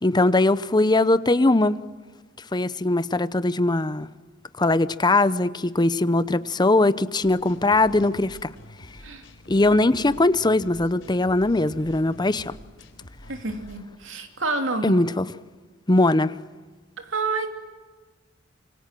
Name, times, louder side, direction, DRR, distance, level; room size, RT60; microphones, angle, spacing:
voice 1, 0.0-1.8 2.5-4.1 4.6-8.5 9.5-12.5 14.8-15.3 15.9-16.4, left 2 dB, 20° left, 15 dB, 0.8 m, -20 dB
sound 1, 7.2-13.8, left 1 dB, 80° left, 3.9 m, -47 dB
voice 2, 13.3-15.0 17.0-17.5, right 3 dB, 75° right, 5 dB, 3.2 m, -28 dB
26.5 x 24.5 x 7.6 m, 1.4 s
head